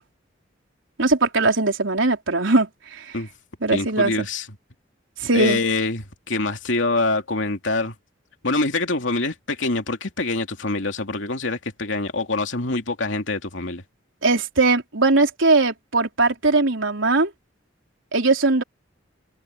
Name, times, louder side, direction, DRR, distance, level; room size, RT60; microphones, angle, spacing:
voice 1, 1.0-3.1 3.6-4.3 5.2-5.6 14.2-17.3 18.1-18.6, right 3 dB, 85° right, 3.6 m, -20 dB
voice 2, 3.7-4.5 5.3-7.9 8.4-13.8, left 3 dB, 75° left, 2.7 m, -25 dB
open air
head